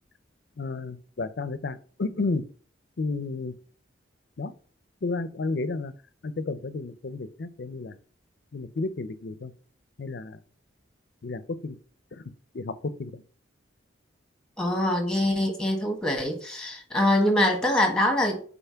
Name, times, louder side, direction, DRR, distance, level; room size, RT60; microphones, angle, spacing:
voice 1, 0.6-2.4 3.0-3.5 4.4-4.5 5.0-5.9 6.2-8.0 8.5-9.5 10.0-10.4 11.2-11.8 12.1-13.2, left 3 dB, 60° left, 0.5 m, -32 dB
voice 2, 14.6-18.6, left 1 dB, 5° left, 1.4 m, -24 dB
5.7 x 4.0 x 5.6 m
head